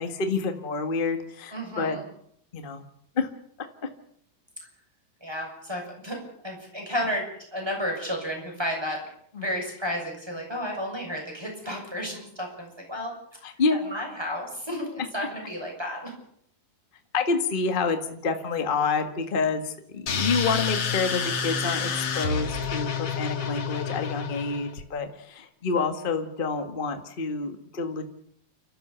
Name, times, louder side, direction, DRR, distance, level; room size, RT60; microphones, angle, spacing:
voice 1, 0.0-2.0 2.5-2.8 3.2-3.3 9.3-9.5 13.4-13.8 17.1-28.0, left 4 dB, 85° left, 6 dB, 0.4 m, -28 dB
voice 2, 1.5-2.0 5.2-7.3 7.5-9.0 9.4-13.1 13.8-16.1, equal, 5° right, 1 dB, 6.4 m, -32 dB
sound 1, 20.1-24.8, left 6 dB, 45° left, 2.5 m, -29 dB
29.5 x 13.5 x 6.9 m, 0.70 s
omnidirectional pair, 4.2 m